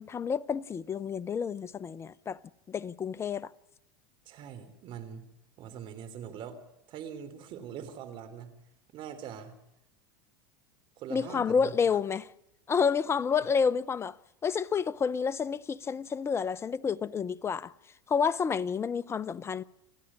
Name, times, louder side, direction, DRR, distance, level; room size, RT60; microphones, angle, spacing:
voice 1, 0.0-2.4 2.7-3.5 11.1-12.3 12.7-14.2 14.4-17.7 18.1-19.6, left 6 dB, 25° left, 0.7 m, -29 dB
voice 2, 4.2-5.2 5.6-6.6 6.9-8.5 8.9-9.5 11.0-11.7, right 8 dB, 50° right, 3.3 m, -42 dB
29.0 x 10.0 x 9.8 m
hypercardioid pair, 100°, 11 cm